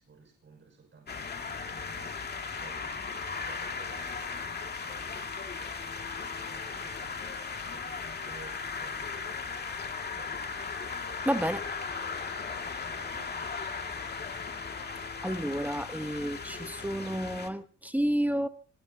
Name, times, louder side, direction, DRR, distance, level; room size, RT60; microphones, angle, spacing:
voice 1, 0.0-5.4 6.2-10.5 12.9-13.7, right 4 dB, 40° right, 5.8 m, -55 dB
sound 1, 1.1-17.5, left 5 dB, 35° left, 2.2 m, -37 dB
voice 2, 11.2-11.6 15.2-18.5, equal, 5° right, 1.1 m, -30 dB
25.5 x 19.0 x 2.8 m
cardioid pair, 90°, 30 cm